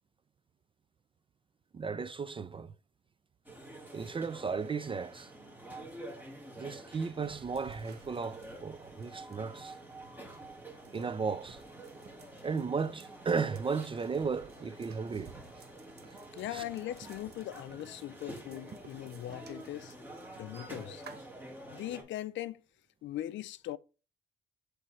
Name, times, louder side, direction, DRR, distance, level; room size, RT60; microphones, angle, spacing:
voice 1, 1.7-2.7 3.9-5.3 6.6-9.7 10.9-11.6 12.4-15.3 16.5-16.6, right 5 dB, 25° right, 0.4 m, -35 dB
sound 1, 3.4-22.0, right 1 dB, 10° right, 2.0 m, -49 dB
sound 2, 7.2-21.2, right 6 dB, 55° right, 0.9 m, -57 dB
voice 2, 16.3-20.0 20.4-21.0 21.7-22.6 23.0-23.8, left 13 dB, 70° left, 0.4 m, -40 dB
7.5 x 3.3 x 4.2 m
cardioid pair, 90°, 20 cm